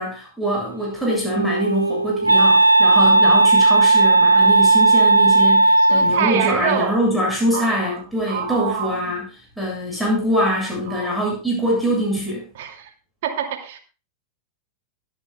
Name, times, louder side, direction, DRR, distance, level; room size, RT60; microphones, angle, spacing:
voice 1, 0.0-9.2 9.6-12.5, equal, ahead, -4 dB, 7.3 m, -23 dB
Wind instrument woodwind instrument, 0.9-6.4, right 3 dB, 85° right, 0.5 m, -15 dB
voice 2, 5.8-7.0 7.5-9.0 10.9-11.1 12.6-12.9 13.2-13.8, right 9 dB, 50° right, 3 dB, 2.6 m, -26 dB
23.5 x 9.3 x 2.4 m, 0.34 s
figure-of-eight pair, 90°, 0 cm